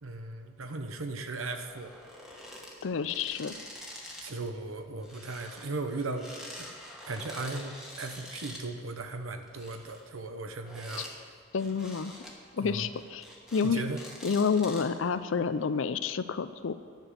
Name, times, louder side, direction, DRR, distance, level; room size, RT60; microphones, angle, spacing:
voice 1, 0.0-1.9 4.2-6.7 7.0-11.1 12.6-12.9 13.6-14.0, right 3 dB, 90° right, 6 dB, 1.0 m, -37 dB
sound 1, 1.6-4.4 4.6-8.6 9.3-11.2 11.5-12.4 12.8-13.7 13.9-15.1 15.6-15.7, left 1 dB, 5° right, 1.4 m, -46 dB
voice 2, 2.8-3.5 11.5-12.1 12.6-13.2 13.5-13.8 14.2-16.7, left 5 dB, 65° left, 13 dB, 0.5 m, -29 dB
10.5 x 6.1 x 8.0 m, 2.2 s
head